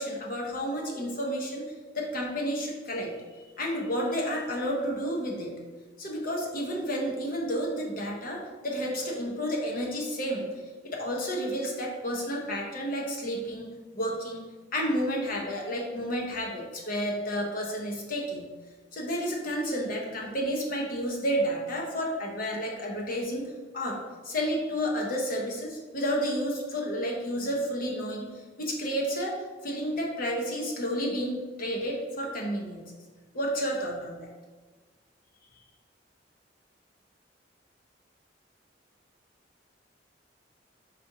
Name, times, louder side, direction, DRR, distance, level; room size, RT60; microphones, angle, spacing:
voice 1, 0.0-5.6 6.0-14.5 14.7-18.5 18.9-24.0 24.2-29.4 29.6-32.8 33.3-34.3, equal, 50° left, -1 dB, 0.9 m, -31 dB
4.2 x 2.7 x 4.7 m, 1.4 s
head